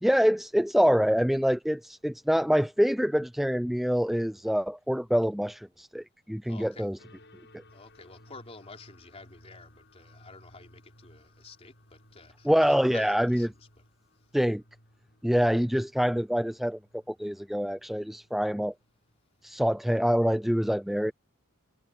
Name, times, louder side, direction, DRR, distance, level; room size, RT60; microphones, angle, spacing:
voice 1, 0.0-7.0 7.5-7.6 12.5-13.5 14.3-14.6 15.2-18.7 19.4-21.1, equal, ahead, 0.4 m, -25 dB
voice 2, 6.5-6.9 7.7-13.8, left 3 dB, 30° left, 4.2 m, -49 dB
sound 1, 7.0-19.6, left 1 dB, 55° left, 7.5 m, -59 dB
head